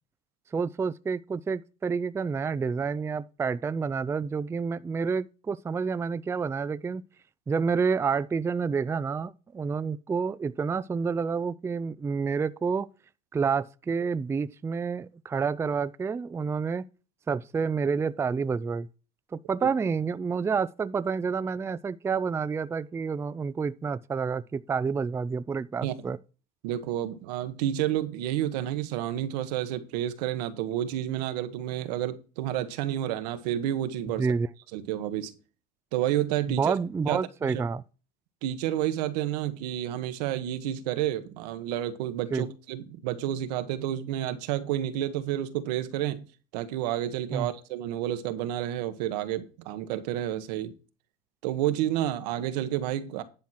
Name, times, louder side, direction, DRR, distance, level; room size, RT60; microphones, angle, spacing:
voice 1, 0.5-7.0 7.5-12.9 13.3-16.8 17.3-18.9 19.3-26.2 34.2-34.5 36.5-37.8 42.3-42.5 47.3-47.5, right 5 dB, 15° right, 0.4 m, -29 dB
voice 2, 26.6-34.3 34.7-35.3 35.9-36.7 37.1-37.6 38.4-46.2 46.5-50.7 51.4-53.2, right 12 dB, 85° right, 1.3 m, -30 dB
10.5 x 4.5 x 5.7 m
supercardioid pair, 115°, 20 cm